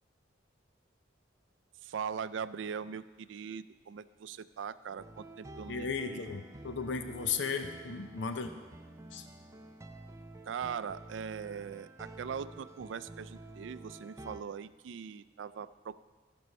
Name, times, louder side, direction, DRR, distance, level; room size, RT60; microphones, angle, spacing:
voice 1, 1.8-6.3 10.5-15.9, right 7 dB, 80° right, 15 dB, 0.4 m, -41 dB
sound 1, 5.0-14.4, right 2 dB, 15° right, 0.5 m, -50 dB
voice 2, 5.7-8.5 9.1-9.3, left 5 dB, 80° left, 7 dB, 0.7 m, -35 dB
15.5 x 5.3 x 5.3 m, 1.3 s
head